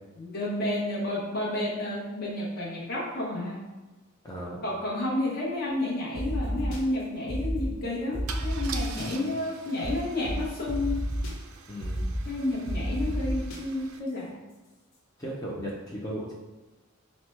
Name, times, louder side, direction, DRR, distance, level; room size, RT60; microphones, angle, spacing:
voice 1, 0.2-3.6 4.6-11.0 12.2-14.4, left 1 dB, 45° left, -5 dB, 0.9 m, -31 dB
voice 2, 4.2-4.6 9.0-9.3 11.7-12.0 15.2-16.3, equal, 15° left, -4 dB, 0.5 m, -36 dB
Car / Engine starting / Idling, 5.7-5.8 6.0-6.3 8.3-14.0, right 6 dB, 75° right, 0.4 m, -44 dB
sound 1, 6.1-6.8 7.3-7.7 8.1-9.1 9.8-9.9 10.2-10.3 10.7-11.3 11.8-12.2 12.7-13.6, equal, 75° left, 0.8 m, -31 dB
4.3 x 2.1 x 4.4 m, 1.1 s
head